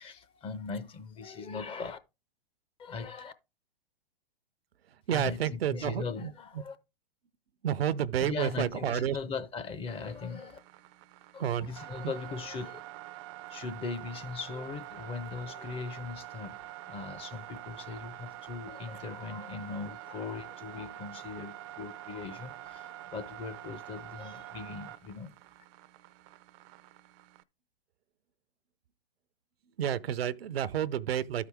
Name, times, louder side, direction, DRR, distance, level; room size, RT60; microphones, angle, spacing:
voice 1, 0.0-2.0 2.8-3.3 5.1-6.8 8.2-10.6 11.3-12.8 13.5-16.6 16.9-25.3, left 5 dB, 20° left, 0.6 m, -39 dB
voice 2, 5.1-6.3 7.6-9.2 11.4-11.7 12.0-12.1 29.8-31.5, right 10 dB, 80° right, 0.6 m, -30 dB
sound 1, 9.9-27.4, right 14 dB, 35° right, 0.4 m, -46 dB
12.5 x 4.8 x 3.4 m
hypercardioid pair, 120°, 30 cm